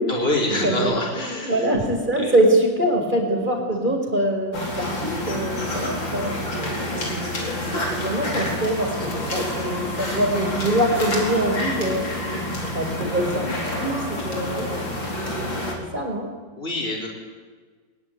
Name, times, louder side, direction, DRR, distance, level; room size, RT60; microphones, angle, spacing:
voice 1, 0.1-1.7 2.1-2.3 16.6-17.1, left 1 dB, 30° left, -2 dB, 5.4 m, -25 dB
voice 2, 1.4-6.4 6.9-7.7 7.9-12.1 12.7-14.9 15.9-16.3, right 1 dB, 25° right, 3 dB, 5.3 m, -24 dB
sound 1, 4.5-15.7, left 1 dB, 80° left, 5.2 m, -28 dB
23.0 x 21.5 x 9.5 m, 1.5 s
omnidirectional pair, 2.0 m